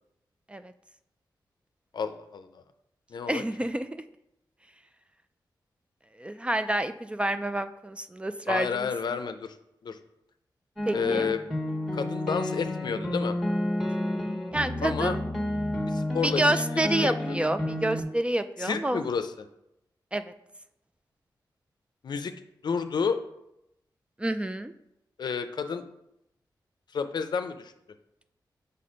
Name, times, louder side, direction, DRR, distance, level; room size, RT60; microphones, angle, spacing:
voice 1, 1.9-2.6 3.1-3.4 8.5-9.5 9.8-10.0 10.9-11.4 11.9-13.4 14.8-15.2 15.9-16.5 17.0-17.1 18.6-19.5 22.0-22.3 22.6-23.2 25.2-25.8 26.9-27.7, left 5 dB, 65° left, 9 dB, 0.5 m, -30 dB
voice 2, 3.3-4.0 6.2-8.9 10.9-11.3 14.5-15.2 16.2-19.0 20.1-20.3 24.2-24.7, right 1 dB, 15° right, 10 dB, 0.3 m, -28 dB
sound 1, 10.8-18.0, left 1 dB, 5° left, 1.3 m, -30 dB
5.3 x 4.2 x 5.1 m, 0.82 s
wide cardioid pair, 90°, 8 cm